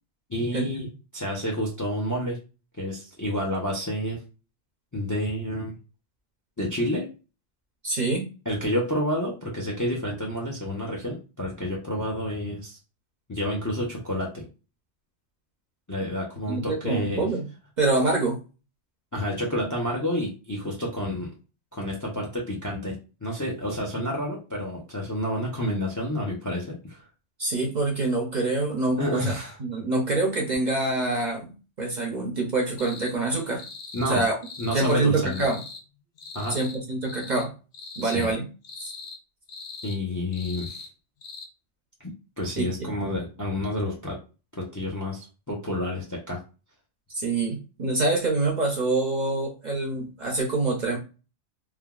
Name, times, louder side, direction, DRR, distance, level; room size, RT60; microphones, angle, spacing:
voice 1, 0.3-2.4 2.8-4.2 4.9-5.8 6.6-7.1 8.5-12.8 13.3-14.5 15.9-17.3 19.1-21.3 21.7-27.0 29.0-29.6 33.9-34.2 34.6-35.5 36.3-36.6 38.0-38.3 39.8-40.8 42.0-42.1 42.4-44.2 44.6-46.4, left 1 dB, 25° left, -1 dB, 0.5 m, -29 dB
voice 2, 7.8-8.2 16.5-17.5 17.8-18.4 27.4-29.3 29.6-31.5 31.8-33.6 34.1-34.4 34.7-35.6 36.5-37.5 38.0-38.4 42.6-42.9 47.1-51.0, right 2 dB, 50° right, 0 dB, 0.6 m, -25 dB
sound 1, 32.8-33.1 33.5-34.2 34.4-35.0 35.3-35.8 36.2-36.8 37.0-37.5 37.7-38.3 38.6-39.2 39.5-40.0 40.3-40.9 41.2-41.5, left 4 dB, 60° left, 0.7 m, -41 dB
3.3 x 2.2 x 2.3 m, 0.32 s
omnidirectional pair, 1.2 m